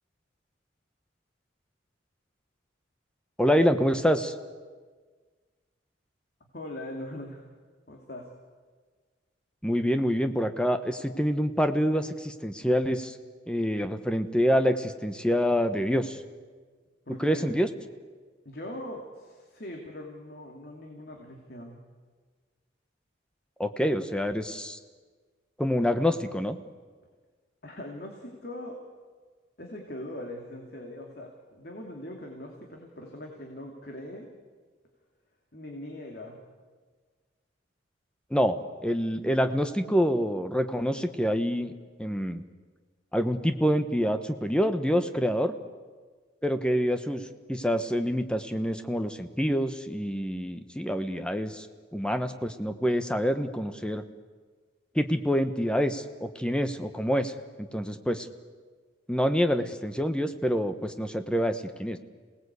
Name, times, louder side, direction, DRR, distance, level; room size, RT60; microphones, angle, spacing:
voice 1, 3.4-4.3 9.6-13.2 13.5-16.2 17.2-17.7 23.6-24.8 25.6-26.6 38.3-41.7 42.0-42.4 43.1-45.5 46.4-47.2 47.5-51.7 51.9-54.0 54.9-57.3 57.6-58.3 59.1-62.0, equal, 5° left, 8 dB, 1.0 m, -26 dB
voice 2, 6.5-7.5 7.9-8.3 17.1-17.6 18.4-21.8 25.8-25.9 27.6-28.8 29.6-34.3 35.5-36.4 46.7-46.8, left 1 dB, 55° left, 1 dB, 2.6 m, -41 dB
28.0 x 18.5 x 8.3 m, 1.5 s
head